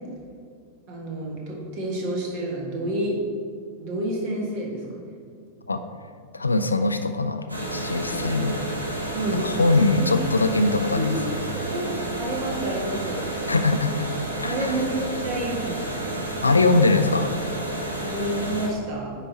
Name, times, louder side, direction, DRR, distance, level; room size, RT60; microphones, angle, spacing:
voice 1, 0.9-3.2 3.8-5.0 8.1-8.7 9.1-9.5 10.0-10.1 10.7-13.2 14.4-15.9 18.0-19.1, right 1 dB, 45° right, -2 dB, 1.8 m, -30 dB
voice 2, 6.3-8.6 9.3-11.4 13.5-14.1 14.4-14.8 16.4-17.3, left 3 dB, 80° left, 9 dB, 0.4 m, -22 dB
sound 1, 7.5-18.7, right 1 dB, 85° right, 1.1 m, -30 dB
9.7 x 4.5 x 4.1 m, 2.2 s
figure-of-eight pair, 90°, 0 cm